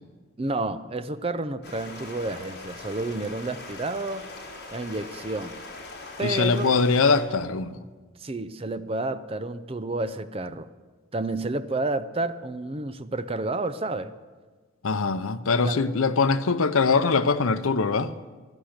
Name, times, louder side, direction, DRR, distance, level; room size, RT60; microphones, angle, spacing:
voice 1, 0.4-4.3 4.7-5.5 6.2-6.7 8.2-10.7 11.1-14.1 15.6-15.8, right 2 dB, 25° right, 0.6 m, -30 dB
Stream, 1.6-7.2, left 2 dB, 50° left, 3.7 m, -41 dB
voice 2, 6.2-7.8 14.8-18.1, left 4 dB, 75° left, 0.7 m, -22 dB
16.0 x 11.5 x 6.6 m
head